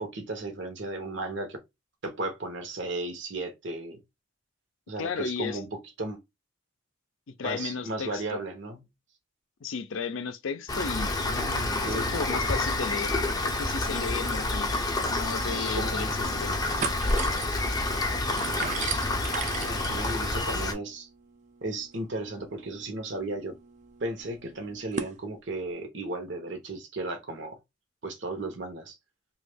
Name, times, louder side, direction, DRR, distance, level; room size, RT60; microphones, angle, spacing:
voice 1, 0.0-1.6 2.0-4.0 4.9-6.2 7.4-8.8 11.3-12.1 15.5-16.1 19.3-21.1 21.6-23.6 24.0-27.6 28.0-28.9, right 2 dB, 60° right, 0.8 m, -35 dB
voice 2, 5.0-5.6 7.3-8.4 9.6-11.3 11.8-13.1 13.4-14.7 15.1-16.1 16.4-16.5, left 5 dB, 75° left, 0.5 m, -34 dB
Rain, 10.7-20.7, left 2 dB, 20° left, 0.5 m, -28 dB
sound 1, 16.0-16.2 16.5-25.2, right 6 dB, 35° right, 0.4 m, -39 dB
3.0 x 2.3 x 3.3 m
head